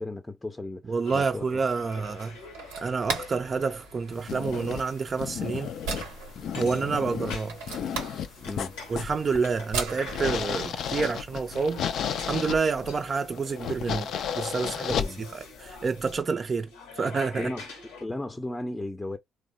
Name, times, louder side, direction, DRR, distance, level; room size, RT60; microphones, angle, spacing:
voice 1, 0.0-1.4 8.4-8.8 14.9-15.2 17.4-17.7 18.0-19.2, left 2 dB, 20° left, 0.5 m, -35 dB
voice 2, 0.9-2.4 2.8-5.7 6.5-7.6 8.9-11.8 12.3-14.1 14.3-16.7 17.0-17.5, right 5 dB, 45° right, 0.3 m, -28 dB
sound 1, 1.0-18.1, left 4 dB, 90° left, 0.8 m, -46 dB
sound 2, 1.7-11.0, right 5 dB, 90° right, 0.6 m, -39 dB
sound 3, 4.1-16.2, left 8 dB, 70° left, 0.3 m, -34 dB
3.1 x 2.0 x 2.6 m
hypercardioid pair, 45°, 0 cm